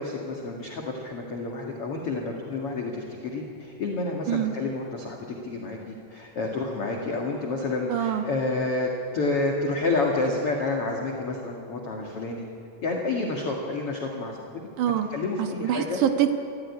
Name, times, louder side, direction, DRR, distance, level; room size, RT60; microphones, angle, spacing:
voice 1, 0.0-12.5 12.8-14.4 15.1-16.0, left 3 dB, 45° left, 0 dB, 2.2 m, -29 dB
voice 2, 7.9-8.2 14.8-15.1 15.4-16.3, right 10 dB, 65° right, 5 dB, 2.2 m, -25 dB
26.0 x 14.5 x 9.7 m, 2.6 s
omnidirectional pair, 5.1 m